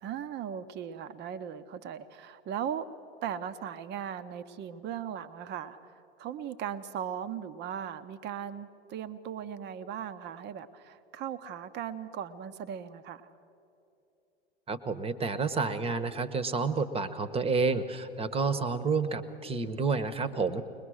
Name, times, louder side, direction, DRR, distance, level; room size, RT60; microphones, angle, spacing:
voice 1, 0.0-2.9 3.2-13.3, right 9 dB, 35° right, 12 dB, 0.9 m, -38 dB
voice 2, 14.7-20.6, right 4 dB, 20° right, 14 dB, 1.1 m, -29 dB
21.5 x 21.5 x 6.4 m, 2.9 s
hypercardioid pair, 90°, 31 cm